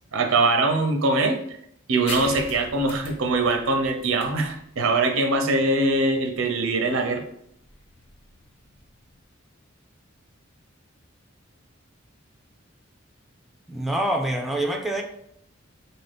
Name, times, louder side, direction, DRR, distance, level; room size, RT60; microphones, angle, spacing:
voice 1, 0.1-1.6 1.9-7.2, right 2 dB, 90° right, 4 dB, 0.6 m, -22 dB
sound 1, 2.1-9.2, left 2 dB, 30° left, 0.9 m, -41 dB
voice 2, 13.7-15.0, right 1 dB, ahead, 2 dB, 0.4 m, -25 dB
4.0 x 2.7 x 3.5 m, 0.73 s
head